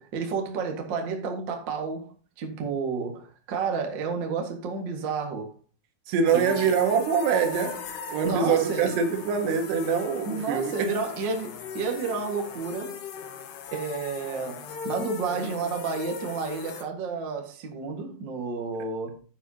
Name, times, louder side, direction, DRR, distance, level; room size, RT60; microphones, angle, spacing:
voice 1, 0.0-2.1 2.4-5.5 6.3-6.7 8.2-9.0 10.2-13.0 13.7-19.2, right 5 dB, 45° right, 1.5 m, -31 dB
voice 2, 6.1-10.9, right 6 dB, 80° right, 3.3 m, -24 dB
sound 1, 6.3-16.8, left 5 dB, 80° left, 3.4 m, -39 dB
9.8 x 9.1 x 2.8 m
omnidirectional pair, 4.8 m